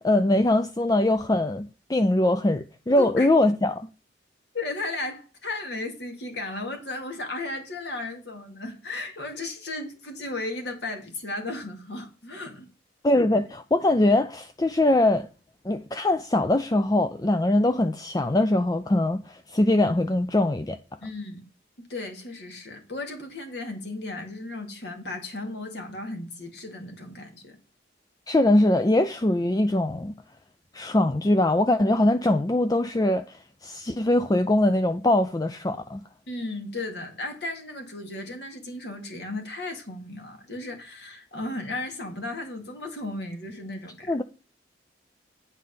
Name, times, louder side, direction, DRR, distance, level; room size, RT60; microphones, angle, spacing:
voice 1, 0.0-3.8 13.0-15.3 15.6-20.8 28.3-30.1 30.7-33.4 33.6-36.0 44.1-44.2, left 1 dB, 20° left, 0.4 m, -22 dB
voice 2, 3.0-3.3 4.5-12.7 21.0-21.4 21.9-27.6 36.3-44.2, left 2 dB, 60° left, 2.3 m, -35 dB
9.3 x 4.1 x 6.7 m
head